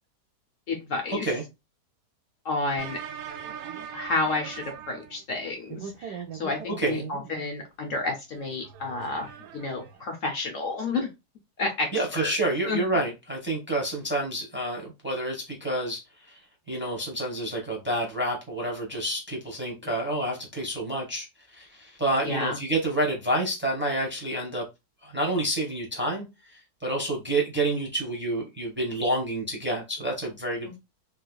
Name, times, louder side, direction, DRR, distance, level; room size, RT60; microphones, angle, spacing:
voice 1, 0.7-1.3 2.4-3.0 3.9-9.3 9.5-11.1 11.6-12.4 12.6-12.8 19.8-19.9 22.2-22.6 30.7-30.8, left 3 dB, 60° left, 1.0 m, -30 dB
sound 1, 2.8-5.4 5.7-7.5 8.3-10.0, right 8 dB, 90° right, 1.2 m, -40 dB
voice 2, 11.9-16.0 16.7-21.3 21.6-24.6 25.0-26.2 26.8-30.8, right 1 dB, 10° right, 0.9 m, -28 dB
3.4 x 3.2 x 2.2 m
omnidirectional pair, 1.7 m